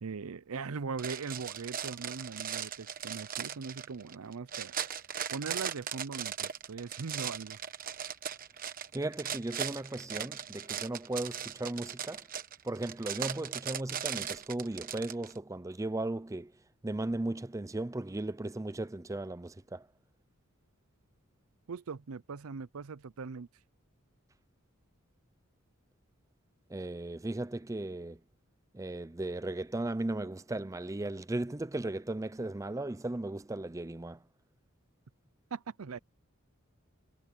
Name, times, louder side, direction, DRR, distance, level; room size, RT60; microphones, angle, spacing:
voice 1, 0.0-4.7 5.3-7.6 21.7-23.5 35.5-36.0, right 5 dB, 80° right, 0.6 m, -40 dB
sound 1, 1.0-15.4, right 8 dB, 40° right, 1.1 m, -38 dB
voice 2, 8.9-12.3 12.6-16.5 16.8-19.9 26.7-28.2 28.7-34.2, right 2 dB, 15° right, 0.5 m, -36 dB
head